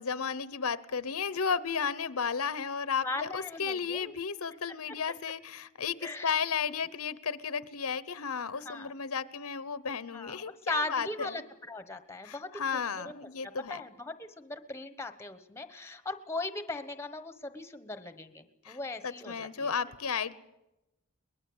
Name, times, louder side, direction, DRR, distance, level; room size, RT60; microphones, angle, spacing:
voice 1, 0.0-11.4 12.2-13.8 18.6-18.8 19.0-20.3, left 6 dB, 70° left, 16 dB, 0.9 m, -33 dB
voice 2, 3.0-4.2 4.9-5.0 6.0-6.3 8.5-8.9 10.1-11.4 11.7-13.1 13.4-19.7, left 2 dB, 10° left, 10 dB, 1.2 m, -39 dB
22.5 x 20.5 x 8.0 m, 0.95 s
head